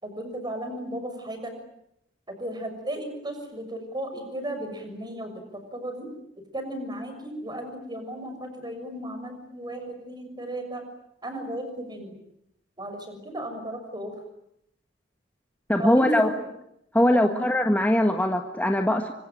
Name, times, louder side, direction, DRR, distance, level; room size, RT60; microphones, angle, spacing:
voice 1, 0.0-1.5 2.3-6.1 6.5-10.8 11.2-12.2 12.8-14.1 15.8-16.3 17.1-17.5, right 1 dB, 25° right, 7 dB, 6.5 m, -35 dB
voice 2, 15.7-16.3 16.9-19.1, left 1 dB, 10° left, 3 dB, 1.6 m, -21 dB
25.5 x 25.0 x 9.1 m, 0.79 s
head